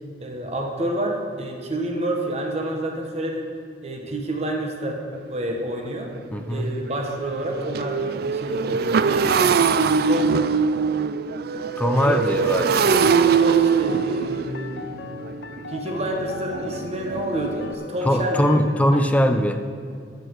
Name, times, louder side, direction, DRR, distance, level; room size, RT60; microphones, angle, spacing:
voice 1, 0.2-3.5 3.8-5.0 5.3-6.1 6.5-9.4 10.0-10.4 12.0-12.5 13.3-14.8 15.7-18.5, right 1 dB, 40° right, 2 dB, 1.4 m, -28 dB
Motorcycle, 5.1-5.2 5.7-5.9 6.1-17.7, right 6 dB, 60° right, 0.4 m, -23 dB
voice 2, 6.3-6.7 11.8-13.1 15.1-15.2 18.0-19.6, equal, 10° left, 7 dB, 0.6 m, -21 dB
sound 1, 12.8-19.0, left 6 dB, 70° left, 0.6 m, -39 dB
12.5 x 8.2 x 4.8 m, 2.4 s
head